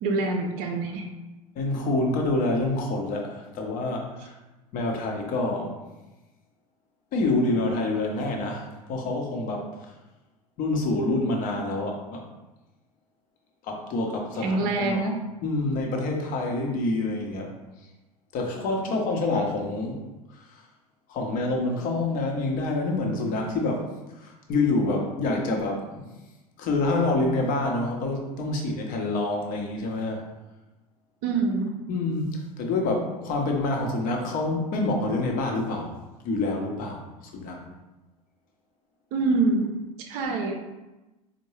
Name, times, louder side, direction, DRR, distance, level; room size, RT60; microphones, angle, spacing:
voice 1, 0.0-1.1 14.4-15.2 31.2-31.7 39.1-40.5, right 3 dB, 50° right, 3 dB, 0.6 m, -25 dB
voice 2, 1.6-4.3 4.7-5.8 7.1-9.7 10.6-12.2 13.6-15.1 15.4-17.5 18.3-20.0 20.3-20.6 21.1-23.8 24.2-26.1 26.6-30.3 31.9-36.0 36.2-37.6, left 2 dB, 45° left, 1 dB, 0.8 m, -27 dB
4.4 x 2.1 x 3.2 m, 1.1 s
figure-of-eight pair, 80°, 19 cm